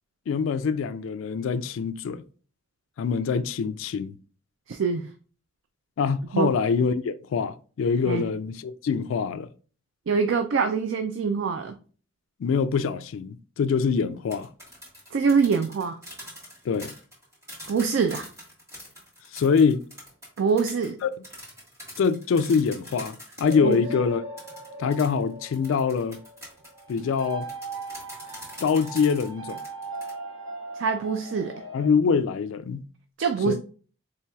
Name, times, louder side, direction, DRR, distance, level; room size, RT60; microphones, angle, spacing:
voice 1, 0.3-2.2 3.0-4.2 6.0-9.5 12.4-14.5 16.6-16.9 19.3-19.8 21.0-21.1 22.0-24.2 24.8-26.2 26.9-27.5 28.6-29.6 31.7-32.8 33.5-33.6, left 5 dB, 80° left, 0.3 m, -24 dB
voice 2, 4.7-5.1 6.3-6.5 8.1-8.2 10.1-11.7 15.1-16.0 17.7-18.3 20.4-21.0 23.6-23.8 30.8-31.6 33.2-33.5, right 5 dB, 70° right, 0.4 m, -24 dB
sound 1, 14.1-23.8 24.4-30.1, equal, 15° right, 1.4 m, -44 dB
sound 2, 23.4-31.9, right 3 dB, 85° right, 1.4 m, -39 dB
4.3 x 3.2 x 2.3 m
head